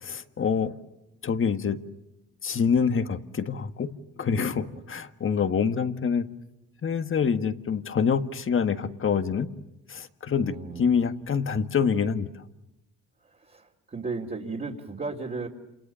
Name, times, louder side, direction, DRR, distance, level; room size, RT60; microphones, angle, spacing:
voice 1, 0.0-0.8 1.2-1.8 2.4-3.9 4.2-6.3 6.8-9.5 9.9-12.3, left 6 dB, 45° left, 9 dB, 1.7 m, -26 dB
voice 2, 4.5-4.8 10.4-11.0 13.2-15.5, right 4 dB, 30° right, -3 dB, 3.2 m, -36 dB
29.5 x 28.0 x 7.1 m, 0.93 s
cardioid pair, 90°, 30 cm